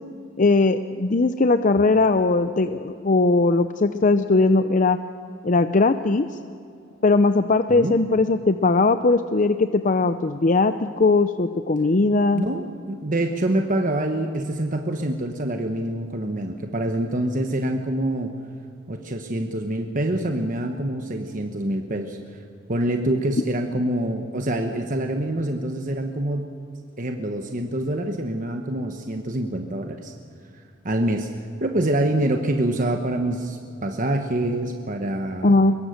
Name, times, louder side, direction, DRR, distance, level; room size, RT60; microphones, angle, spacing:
voice 1, 0.4-5.0 5.4-6.3 7.0-12.4 35.4-35.8, left 3 dB, 40° left, 10 dB, 0.6 m, -19 dB
voice 2, 12.3-18.3 18.9-22.2 22.7-26.5 27.0-30.1 30.8-31.3 31.6-35.5, right 1 dB, 45° right, 4 dB, 1.2 m, -26 dB
24.0 x 22.0 x 6.6 m, 2.5 s
head